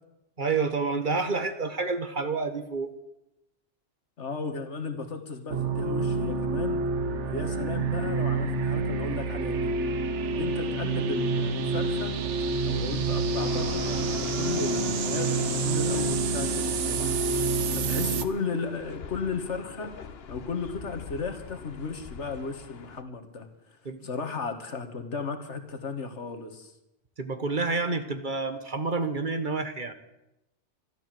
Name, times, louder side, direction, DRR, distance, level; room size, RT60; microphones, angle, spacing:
voice 1, 0.4-2.9 23.8-24.1 27.2-29.9, right 4 dB, 45° right, 9 dB, 1.3 m, -29 dB
voice 2, 4.2-9.7 10.2-12.2 12.6-17.2 17.8-19.9 20.3-23.5 24.0-26.7, left 4 dB, 75° left, 7 dB, 1.9 m, -35 dB
sound 1, 5.5-18.2, right 3 dB, 75° right, 1.2 m, -28 dB
sound 2, 13.3-23.0, left 6 dB, 60° left, 1.1 m, -41 dB
13.5 x 12.5 x 7.6 m, 0.89 s
omnidirectional pair, 1.2 m